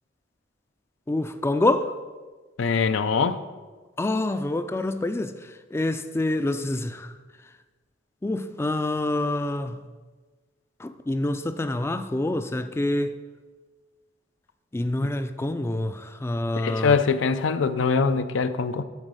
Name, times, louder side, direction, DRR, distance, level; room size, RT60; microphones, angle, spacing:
voice 1, 1.1-1.9 4.0-5.3 5.7-7.1 8.2-9.8 10.8-13.1 14.7-16.9, left 2 dB, 15° left, 0.3 m, -26 dB
voice 2, 2.6-3.4 16.6-18.8, left 5 dB, 85° left, 0.5 m, -23 dB
9.8 x 4.1 x 6.6 m
head